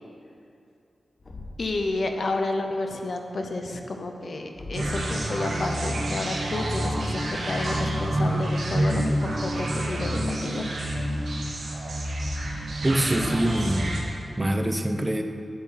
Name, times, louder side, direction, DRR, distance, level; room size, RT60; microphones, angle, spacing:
Thump thud, 1.2-1.8 4.5-5.1, left 1 dB, 35° left, 1.2 m, -40 dB
voice 1, 1.6-10.7, left 2 dB, 50° left, 4 dB, 0.7 m, -31 dB
sound 1, 4.7-14.0, right 1 dB, 70° right, 1.6 m, -28 dB
voice 2, 12.8-13.9 14.4-15.2, right 1 dB, 20° right, 5 dB, 0.7 m, -24 dB
8.5 x 7.4 x 5.7 m, 2.6 s
wide cardioid pair, 130°, 0 cm